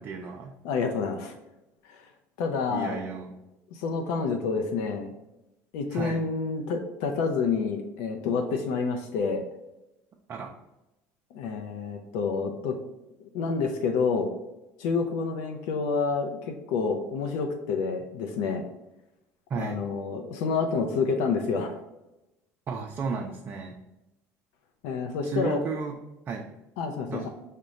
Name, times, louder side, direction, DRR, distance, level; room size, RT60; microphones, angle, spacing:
voice 1, 0.0-0.5 2.7-3.3 5.9-6.2 10.3-10.5 19.5-19.8 22.7-23.8 25.2-26.0 26.3-26.5 27.1-27.3, right 5 dB, 35° right, 1 dB, 0.4 m, -33 dB
voice 2, 0.6-1.3 1.8-2.0 2.4-3.0 3.7-5.1 5.7-9.4 11.3-12.8 13.2-14.3 14.8-18.6 19.5-21.7 24.8-25.6 26.8-27.3, left 5 dB, 85° left, 3 dB, 0.5 m, -28 dB
4.9 x 2.2 x 3.9 m, 0.94 s
cardioid pair, 135°, 6 cm